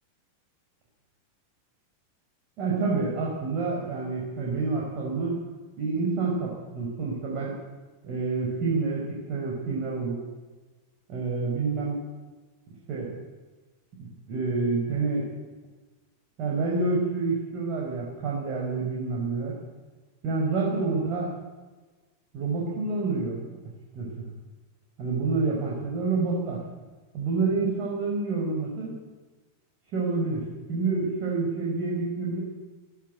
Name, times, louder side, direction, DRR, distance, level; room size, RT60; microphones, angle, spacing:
voice 1, 2.6-5.4 5.8-7.5 8.0-10.2 11.1-12.0 12.9-13.1 14.0-15.3 16.4-19.5 20.2-21.3 22.3-23.4 23.9-24.3 25.0-26.6 27.1-29.0 29.9-32.4, right 4 dB, 40° right, -3 dB, 5.3 m, -28 dB
17.0 x 16.5 x 9.5 m, 1.3 s
figure-of-eight pair, 90°, 0 cm